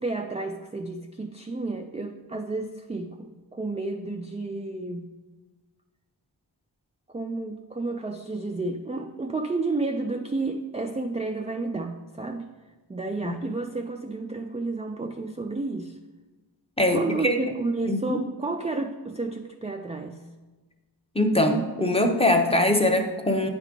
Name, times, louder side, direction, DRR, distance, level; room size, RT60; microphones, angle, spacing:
voice 1, 0.0-5.1 7.1-12.5 12.9-16.0 16.9-20.2, right 3 dB, 15° right, 4 dB, 0.3 m, -31 dB
voice 2, 16.8-17.6 17.8-18.2 21.1-23.5, left 1 dB, 15° left, 4 dB, 0.7 m, -22 dB
9.1 x 4.9 x 3.7 m, 1.2 s
wide cardioid pair, 50°, 45 cm